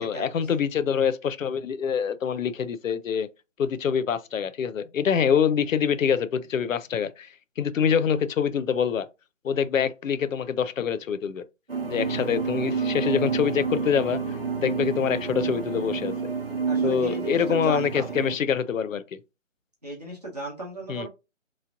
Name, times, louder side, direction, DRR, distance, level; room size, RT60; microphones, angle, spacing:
voice 1, 0.0-3.3 3.6-9.1 9.4-11.4 11.9-16.3 16.8-19.0 20.9-21.1, left 7 dB, 85° left, 0.5 m, -25 dB
sound 1, 11.7-18.3, right 5 dB, 50° right, 0.5 m, -29 dB
voice 2, 16.6-18.2 19.8-21.1, right 2 dB, 30° right, 0.9 m, -36 dB
3.0 x 2.6 x 2.4 m
figure-of-eight pair, 180°, 38 cm